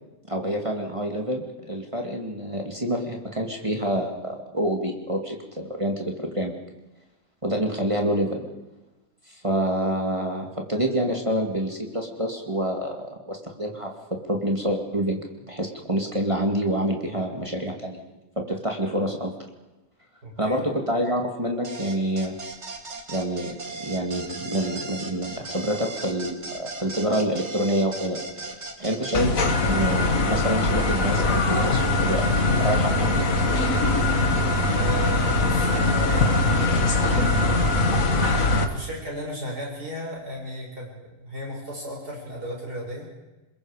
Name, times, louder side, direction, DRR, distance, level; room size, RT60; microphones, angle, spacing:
voice 1, 0.3-6.5 7.4-8.4 9.4-18.1 18.4-19.3 20.4-22.4 23.1-33.5, equal, 20° right, 1 dB, 2.3 m, -27 dB
voice 2, 20.2-20.6 34.7-36.9 38.5-40.9 41.2-43.1, equal, 70° right, -2 dB, 7.3 m, -34 dB
sound 1, 21.6-29.2, right 3 dB, 40° right, 2.3 m, -37 dB
sound 2, 29.1-38.7, left 2 dB, 55° left, 2.0 m, -21 dB
27.5 x 21.5 x 5.1 m, 1.0 s
omnidirectional pair, 1.8 m